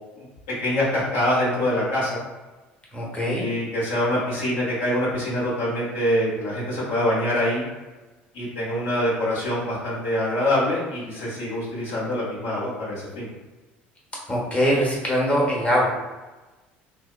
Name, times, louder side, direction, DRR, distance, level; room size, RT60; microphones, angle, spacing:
voice 1, 0.6-2.2 3.2-7.6 8.3-13.3, left 1 dB, 75° left, -7 dB, 1.1 m, -25 dB
voice 2, 2.9-3.5 14.3-15.9, equal, 25° left, -4 dB, 0.8 m, -22 dB
2.7 x 2.1 x 2.4 m, 1.2 s
hypercardioid pair, 70°, 6 cm